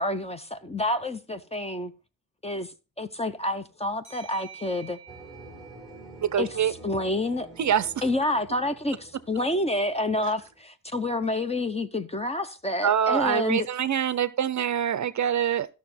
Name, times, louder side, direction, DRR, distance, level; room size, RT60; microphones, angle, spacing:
voice 1, 0.0-1.9 2.4-2.7 3.0-5.0 6.4-6.5 6.8-7.5 8.0-13.7, left 1 dB, 15° left, 0.6 m, -28 dB
sound 1, 4.0-7.4, right 7 dB, 15° right, 7.5 m, -50 dB
sound 2, 5.1-10.6, right 1 dB, ahead, 2.5 m, -48 dB
voice 2, 6.2-6.7 7.6-7.9 12.8-15.7, right 9 dB, 50° right, 0.5 m, -25 dB
13.5 x 6.1 x 4.2 m
wide cardioid pair, 170°, 37 cm